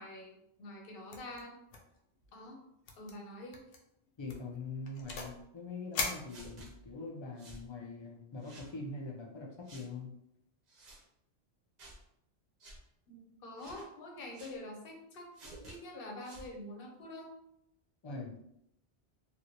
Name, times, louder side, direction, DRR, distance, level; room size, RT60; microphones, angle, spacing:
voice 1, 0.0-1.6 2.3-2.6 3.0-3.6 13.1-17.3, left 1 dB, 60° left, 1 dB, 0.9 m, -46 dB
sound 1, 1.1-1.4 1.7-2.3 2.9-3.1 3.5-3.8 4.3-5.4 5.9-6.9, left 4 dB, 90° left, 0.9 m, -40 dB
voice 2, 4.2-10.1 18.0-18.3, left 3 dB, 35° left, -2 dB, 0.4 m, -43 dB
sound 2, 6.3-6.7 7.4-7.7 8.4-8.7 9.7-9.9 10.7-11.0 11.8-12.0 12.6-12.8 13.6-13.9 14.3-14.6 15.3-15.8 16.2-16.5, right 2 dB, 45° right, 0.7 m, -52 dB
3.0 x 2.5 x 2.8 m, 0.77 s
omnidirectional pair, 1.1 m